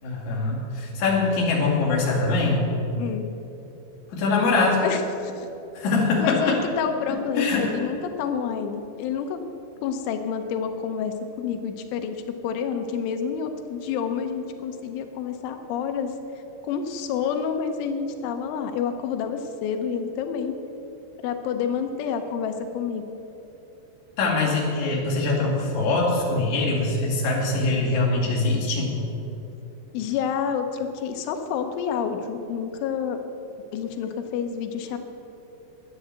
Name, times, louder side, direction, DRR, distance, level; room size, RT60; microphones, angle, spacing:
voice 1, 0.0-2.7 4.1-4.8 5.7-6.6 7.4-7.7 24.2-28.9, left 3 dB, 45° left, -3 dB, 3.3 m, -23 dB
voice 2, 3.0-3.3 4.8-5.5 6.2-9.4 9.8-16.1 16.6-20.6 21.2-23.0 29.9-33.2 33.7-35.0, left 7 dB, 90° left, 6 dB, 3.3 m, -28 dB
11.5 x 9.5 x 7.8 m, 3.0 s
omnidirectional pair, 5.3 m